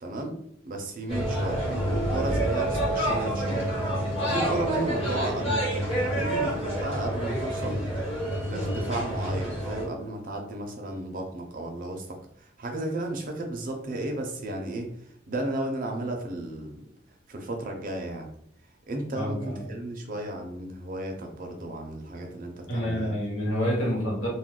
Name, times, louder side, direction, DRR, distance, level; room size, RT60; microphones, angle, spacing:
voice 1, 0.0-0.4 0.6-3.7 4.3-7.9 8.4-16.9 17.3-18.3 18.9-23.1, right 1 dB, 45° right, 3 dB, 0.6 m, -34 dB
sound 1, 1.1-9.8, right 1 dB, 30° left, 1.2 m, -28 dB
voice 2, 19.2-19.6 22.7-24.3, equal, 90° left, -3 dB, 1.2 m, -28 dB
2.3 x 2.2 x 3.6 m, 0.70 s
head